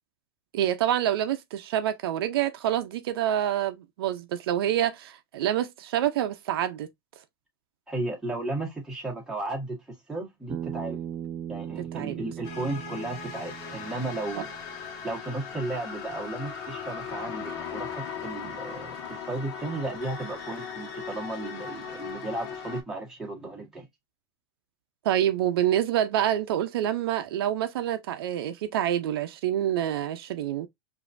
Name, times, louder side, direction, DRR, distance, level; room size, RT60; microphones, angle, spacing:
voice 1, 0.5-6.9 11.9-12.2 25.0-30.7, right 11 dB, 80° right, 0.5 m, -27 dB
voice 2, 7.9-11.0 11.5-14.5 15.0-23.9, right 2 dB, 5° right, 1.5 m, -34 dB
Bass guitar, 10.5-14.8, right 10 dB, 20° right, 0.3 m, -38 dB
sound 1, 12.4-22.8, left 6 dB, 55° left, 1.2 m, -38 dB
4.9 x 2.7 x 2.5 m
supercardioid pair, 150°, 12 cm